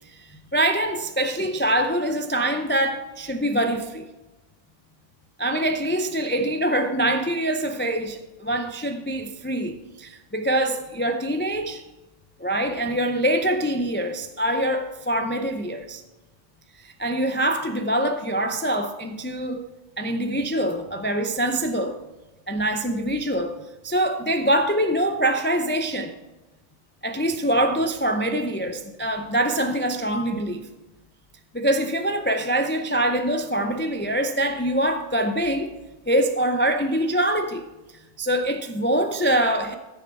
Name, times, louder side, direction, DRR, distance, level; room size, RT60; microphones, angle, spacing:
voice 1, 0.1-4.1 5.4-11.8 12.4-16.0 16.8-19.7 20.0-22.0 22.5-23.6 23.8-26.1 27.0-30.7 31.5-35.8 36.1-37.7 38.2-39.8, right 1 dB, 15° left, 0.3 m, -24 dB
14.5 x 6.6 x 4.5 m
omnidirectional pair, 1.2 m